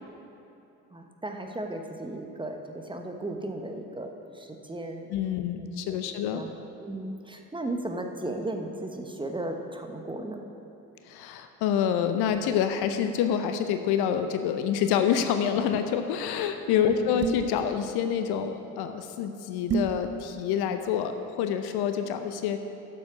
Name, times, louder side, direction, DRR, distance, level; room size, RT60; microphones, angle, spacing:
voice 1, 0.9-5.1 5.6-6.5 6.8-10.4 16.9-17.2, right 1 dB, 10° right, 3 dB, 1.1 m, -36 dB
voice 2, 5.1-6.4 11.0-22.6, left 8 dB, 60° left, 8 dB, 0.8 m, -27 dB
sound 1, 17.2-17.6 19.7-20.0, right 6 dB, 35° right, 0.9 m, -28 dB
12.0 x 7.8 x 5.0 m, 2.8 s
figure-of-eight pair, 50°, 45 cm